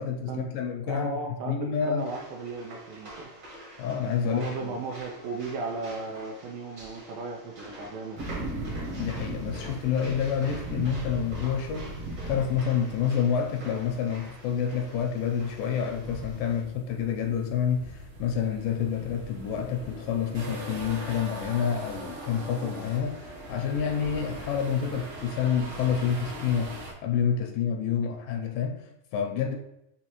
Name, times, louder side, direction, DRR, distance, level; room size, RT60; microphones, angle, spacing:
voice 1, 0.0-1.1 1.5-2.0 3.8-4.8 9.0-11.9 12.3-29.6, left 7 dB, 80° left, 3 dB, 2.1 m, -28 dB
voice 2, 0.9-3.3 4.2-8.6, right 3 dB, 80° right, 1 dB, 2.1 m, -36 dB
sound 1, 2.0-16.6, equal, 45° right, 0.9 m, -46 dB
sound 2, 8.1-26.9, right 1 dB, 65° right, 1.5 m, -40 dB
6.2 x 2.8 x 2.9 m, 0.85 s
omnidirectional pair, 4.2 m